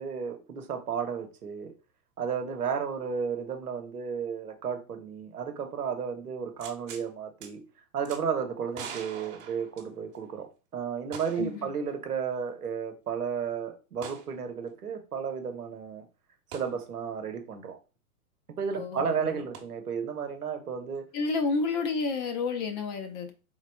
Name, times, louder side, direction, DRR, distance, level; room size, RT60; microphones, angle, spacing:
voice 1, 0.0-1.7 2.2-7.6 7.9-16.1 16.5-17.8 18.6-21.1, right 6 dB, 90° right, 0.9 m, -33 dB
sound 1, 6.6-7.1 7.4-7.5 8.1-8.2 8.7-10.3 11.1-11.6 11.9-12.0 14.0-14.3 16.5-16.7 19.5-19.6, right 7 dB, 30° right, 0.9 m, -42 dB
voice 2, 11.4-11.7 18.7-19.4 21.1-23.3, left 4 dB, 30° left, 0.4 m, -30 dB
3.7 x 3.2 x 2.2 m
hypercardioid pair, 110°, 44 cm